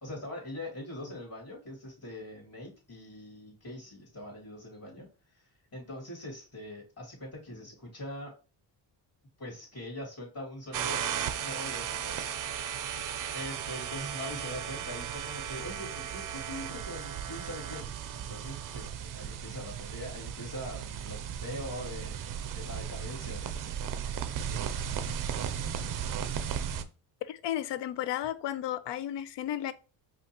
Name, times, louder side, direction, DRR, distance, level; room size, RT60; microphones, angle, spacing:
voice 1, 0.0-5.1 5.3-8.3 9.4-11.0 11.4-12.2 13.3-23.7 24.5-24.8, left 1 dB, 35° left, 2.4 m, -42 dB
sound 1, 10.7-26.8, right 8 dB, 50° right, 0.5 m, -36 dB
voice 2, 27.2-29.7, left 12 dB, 70° left, 0.5 m, -33 dB
5.2 x 2.5 x 2.9 m
cardioid pair, 110°, 45 cm